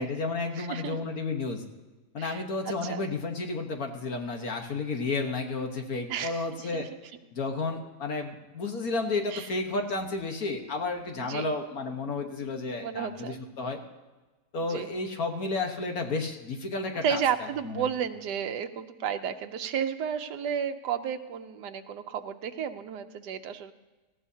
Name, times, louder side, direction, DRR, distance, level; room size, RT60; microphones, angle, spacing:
voice 1, 0.0-1.6 2.1-6.9 7.3-13.8 14.5-17.2 17.6-17.8, left 3 dB, 60° left, 3 dB, 1.6 m, -32 dB
voice 2, 0.6-1.1 2.2-3.1 6.1-6.9 9.3-9.5 11.2-11.5 12.8-13.4 14.7-14.9 17.0-23.7, right 8 dB, 85° right, 8 dB, 1.3 m, -32 dB
19.0 x 15.0 x 2.8 m, 1.2 s
omnidirectional pair, 1.8 m